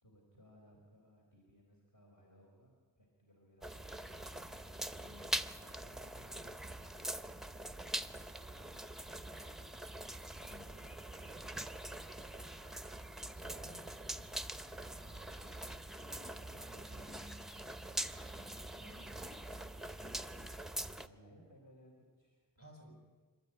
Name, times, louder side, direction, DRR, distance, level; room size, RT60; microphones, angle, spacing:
voice 1, 0.0-4.6 5.2-8.1 8.5-9.9 14.1-14.4 14.9-17.1 20.9-23.0, equal, 45° left, -2 dB, 4.4 m, -64 dB
sound 1, 3.6-21.1, right 1 dB, ahead, 0.7 m, -44 dB
voice 2, 5.0-5.3 10.4-10.9 13.3-13.9 18.8-19.2 22.6-23.0, equal, 30° left, 1 dB, 7.2 m, -57 dB
26.0 x 13.0 x 9.0 m, 1.4 s
wide cardioid pair, 65°, 44 cm